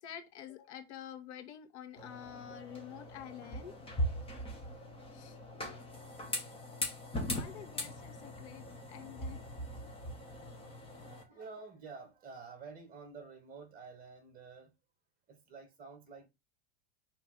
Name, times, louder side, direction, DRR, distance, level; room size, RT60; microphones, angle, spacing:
voice 1, 0.0-3.8 5.1-5.4 6.3-6.4 7.3-9.4, left 10 dB, 75° left, 2.0 m, -48 dB
sound 1, 2.0-11.2, equal, 15° left, 2.6 m, -40 dB
voice 2, 10.5-14.8 15.3-16.3, right 4 dB, 25° right, 3.1 m, -50 dB
6.0 x 4.6 x 5.6 m
supercardioid pair, 135°, 33 cm